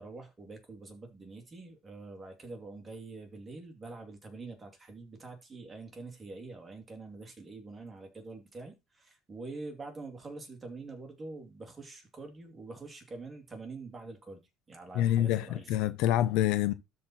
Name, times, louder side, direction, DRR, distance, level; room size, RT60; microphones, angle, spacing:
voice 1, 0.0-14.4 14.7-15.7, right 3 dB, 15° right, 2.6 m, -45 dB
voice 2, 14.9-16.7, left 12 dB, 70° left, 0.9 m, -26 dB
12.5 x 4.3 x 4.3 m
cardioid pair, 140°, 0 cm